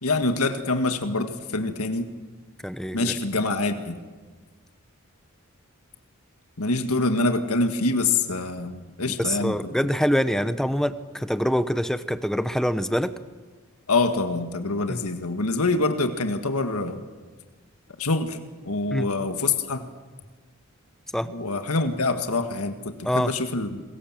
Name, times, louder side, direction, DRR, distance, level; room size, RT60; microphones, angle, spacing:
voice 1, 0.0-2.1 2.9-4.0 6.6-9.6 13.9-17.0 18.0-18.4 18.6-19.8 21.3-23.8, left 3 dB, 85° left, 7 dB, 1.7 m, -25 dB
voice 2, 2.6-3.1 9.2-13.1 14.9-15.0 18.9-19.1 21.1-21.3 23.0-23.3, equal, ahead, 12 dB, 0.8 m, -25 dB
29.0 x 22.0 x 7.5 m, 1.4 s
head